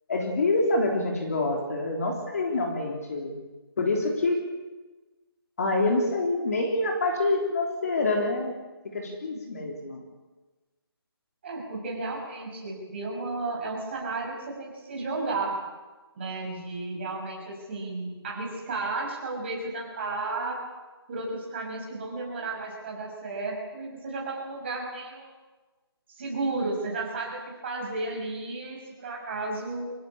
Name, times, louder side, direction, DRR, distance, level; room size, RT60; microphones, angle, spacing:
voice 1, 0.1-3.4 3.8-4.4 5.6-8.6 8.8-10.0, left 2 dB, 35° left, 2 dB, 3.7 m, -26 dB
voice 2, 11.4-15.6 16.2-20.7 21.1-25.3 26.1-29.9, right 3 dB, 25° right, -1 dB, 6.1 m, -33 dB
26.0 x 16.5 x 8.7 m, 1.2 s
hypercardioid pair, 175°, 13 cm